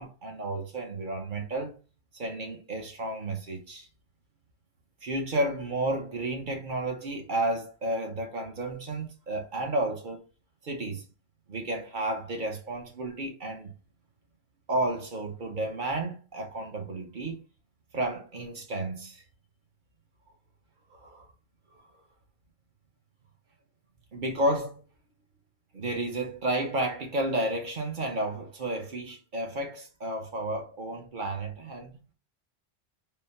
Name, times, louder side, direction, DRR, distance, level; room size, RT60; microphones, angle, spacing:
voice 1, 0.0-1.7 2.1-3.9 5.0-10.2 10.6-11.0 11.5-13.7 14.7-17.4 17.9-19.2 20.9-21.3 21.8-21.9 24.1-24.8 25.7-32.0, right 1 dB, 50° right, 1.0 m, -32 dB
3.8 x 2.1 x 4.0 m
omnidirectional pair, 1.1 m